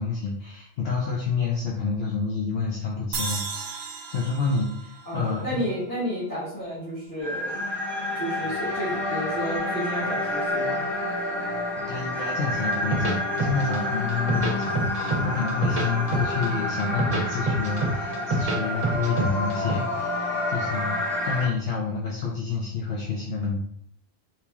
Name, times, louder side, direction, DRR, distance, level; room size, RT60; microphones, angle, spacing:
voice 1, 0.0-5.6 11.9-23.6, left 4 dB, 65° left, -3 dB, 0.8 m, -29 dB
sound 1, 3.1-6.4, right 4 dB, 70° right, 0.8 m, -36 dB
voice 2, 5.0-7.6 8.1-10.8, equal, 20° left, -11 dB, 1.3 m, -31 dB
sound 2, 7.2-21.5, left 1 dB, ahead, 1.0 m, -29 dB
sound 3, 12.7-13.8 14.1-15.2 15.5-16.5 16.8-18.6 18.8-19.7, right 3 dB, 35° right, 0.8 m, -26 dB
2.9 x 2.9 x 3.5 m, 0.69 s
omnidirectional pair, 1.2 m